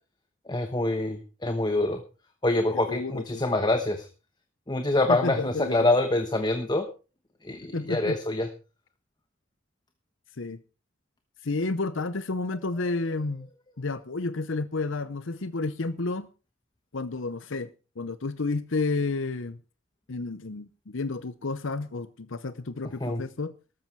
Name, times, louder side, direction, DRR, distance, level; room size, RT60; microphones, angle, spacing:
voice 1, 0.5-2.0 2.4-4.1 4.7-6.9 7.4-8.5 23.0-23.2, left 2 dB, 20° left, 1.1 m, -25 dB
voice 2, 2.7-3.4 5.1-5.9 7.7-8.2 10.4-10.6 11.4-13.5 13.8-16.3 16.9-17.7 18.0-19.6 20.1-23.5, left 3 dB, 65° left, 0.8 m, -31 dB
13.5 x 13.0 x 4.6 m
head